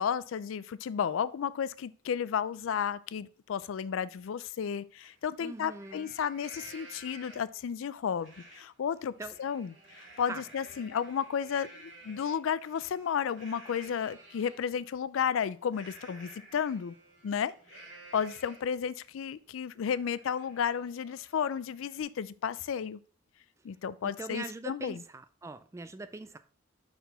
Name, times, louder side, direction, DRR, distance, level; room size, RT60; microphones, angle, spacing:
voice 1, 0.0-9.1 9.4-9.7 10.2-16.9 17.2-17.8 18.1-23.0 23.6-25.0, left 7 dB, 80° left, 0.4 m, -33 dB
Livestock farm animals working animals, 5.0-5.1 5.5-7.6 8.2-8.6 9.0-14.6 15.7-18.8 19.2-19.3 19.7-22.0, right 2 dB, 70° right, 2.6 m, -53 dB
voice 2, 5.4-6.1 9.2-9.4 10.3-10.4 24.0-26.4, right 2 dB, 15° right, 0.3 m, -42 dB
6.0 x 4.3 x 4.0 m
head